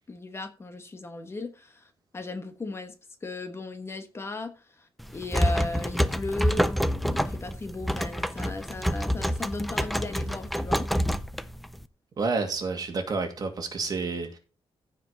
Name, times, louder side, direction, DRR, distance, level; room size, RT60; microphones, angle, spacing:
voice 1, 0.1-2.9 3.2-10.9, left 2 dB, 25° left, 1.2 m, -36 dB
sound 1, 5.0-11.8, equal, ahead, 0.5 m, -27 dB
voice 2, 12.2-14.4, right 4 dB, 40° right, 2.4 m, -29 dB
15.5 x 5.1 x 4.2 m
wide cardioid pair, 160°, 10 cm